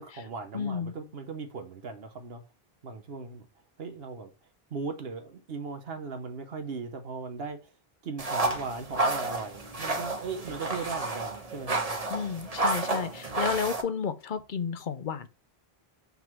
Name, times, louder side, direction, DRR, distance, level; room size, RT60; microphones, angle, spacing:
voice 1, 0.0-2.4 2.8-3.5 3.8-4.3 4.7-7.7 8.0-12.0, right 4 dB, 70° right, 1.1 m, -38 dB
voice 2, 0.5-0.9 12.1-15.3, left 6 dB, 55° left, 0.8 m, -32 dB
sound 1, 8.2-13.8, right 2 dB, 40° right, 1.2 m, -31 dB
5.7 x 3.7 x 6.0 m
omnidirectional pair, 1.1 m